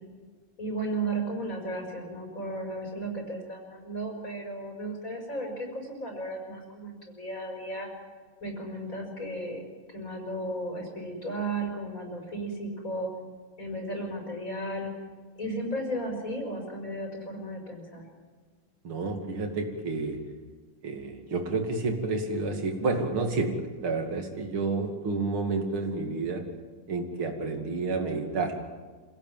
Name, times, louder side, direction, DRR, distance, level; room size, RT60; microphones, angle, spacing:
voice 1, 0.6-7.9 8.4-9.6 9.9-13.1 13.6-14.9 15.4-18.0, right 1 dB, 40° left, 2 dB, 6.0 m, -34 dB
voice 2, 18.8-20.2 20.8-26.4 26.9-28.6, right 3 dB, 90° right, 3 dB, 3.4 m, -30 dB
27.0 x 17.0 x 9.2 m, 1.5 s
omnidirectional pair, 2.2 m